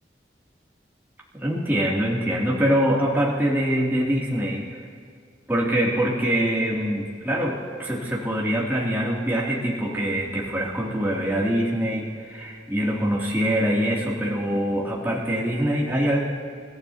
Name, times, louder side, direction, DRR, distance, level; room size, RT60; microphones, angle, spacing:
voice 1, 1.3-4.8 5.5-16.2, equal, 10° right, -5 dB, 2.6 m, -24 dB
30.0 x 14.5 x 2.8 m, 2.2 s
head